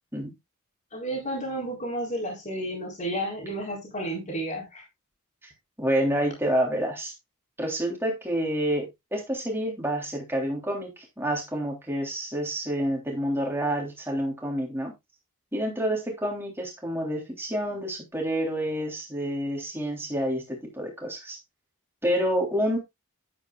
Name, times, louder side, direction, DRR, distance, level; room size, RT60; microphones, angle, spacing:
voice 1, 0.9-4.8, right 1 dB, 35° left, 4.2 m, -32 dB
voice 2, 5.8-7.1 7.6-14.9 15.5-21.4 22.0-22.8, equal, 10° right, 3.3 m, -28 dB
10.5 x 9.3 x 2.4 m
head